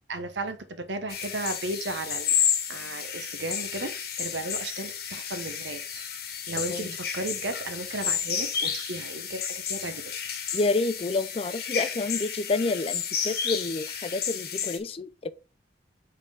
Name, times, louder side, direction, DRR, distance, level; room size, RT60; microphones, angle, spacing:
voice 1, 0.1-2.4 2.7-6.0 6.5-10.0, right 2 dB, 85° right, 1.0 m, -35 dB
sound 1, 1.1-14.8, left 8 dB, 55° left, 1.2 m, -31 dB
voice 2, 10.5-15.3, left 3 dB, 30° left, 0.4 m, -29 dB
7.7 x 3.7 x 3.6 m
head